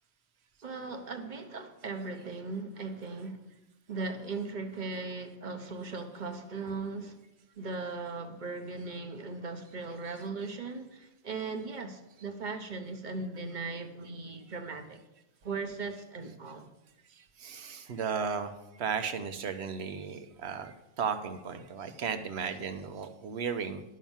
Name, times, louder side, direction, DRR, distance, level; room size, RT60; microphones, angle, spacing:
voice 1, 0.6-3.4 3.9-7.2 7.6-15.0 15.4-16.7, right 3 dB, 40° right, 1.2 m, -38 dB
voice 2, 17.2-18.5 18.8-23.8, right 6 dB, 60° right, 1.1 m, -35 dB
10.5 x 6.3 x 7.2 m
omnidirectional pair, 1.3 m